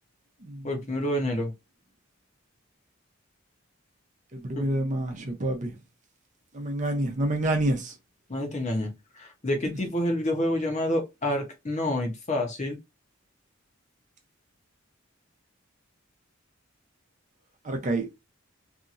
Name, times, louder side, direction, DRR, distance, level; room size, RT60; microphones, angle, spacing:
voice 1, 0.6-1.5 4.6-4.7 8.3-12.8, left 1 dB, 35° left, 0.9 m, -28 dB
voice 2, 4.3-5.8 6.5-7.9 17.6-18.1, right 1 dB, 35° right, 0.7 m, -28 dB
2.8 x 2.6 x 2.5 m
head